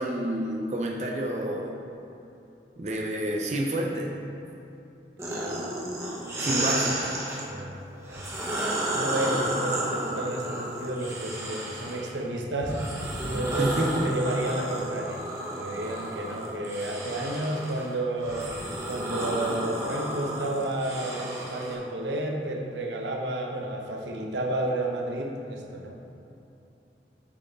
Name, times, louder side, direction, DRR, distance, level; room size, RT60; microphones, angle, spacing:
voice 1, 0.0-1.7 2.8-4.1 6.4-7.0 13.6-14.1, right 1 dB, 40° right, -1 dB, 0.7 m, -29 dB
sound 1, 5.2-7.4 8.0-12.1 12.6-21.7, right 1 dB, 15° right, 1.1 m, -32 dB
voice 2, 5.2-5.6 6.4-6.9 7.4-8.3 8.9-12.8 13.2-15.2 15.5-18.5 18.9-26.0, right 1 dB, 90° right, 1 dB, 1.0 m, -31 dB
9.0 x 6.2 x 4.1 m, 2.9 s
head